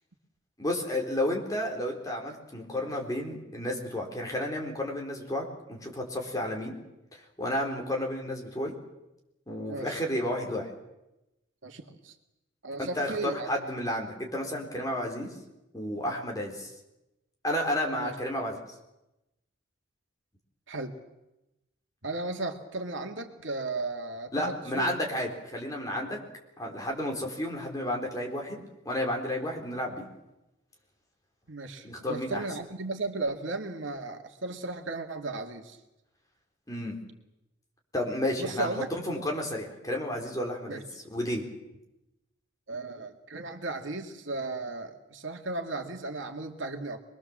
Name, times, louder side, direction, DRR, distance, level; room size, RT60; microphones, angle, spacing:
voice 1, 0.6-6.7 7.1-8.7 9.5-10.7 12.8-15.4 15.7-16.7 17.4-18.8 24.3-26.2 26.6-30.1 31.8-32.4 36.7-37.0 37.9-41.4, left 1 dB, 15° left, 0 dB, 4.3 m, -32 dB
voice 2, 9.7-10.0 11.6-12.1 12.6-13.5 17.9-18.1 20.7-21.0 22.0-24.9 31.5-35.8 38.4-38.9 40.7-40.8 42.7-47.0, right 2 dB, 70° right, 4 dB, 2.3 m, -35 dB
25.0 x 22.0 x 7.5 m, 0.95 s
head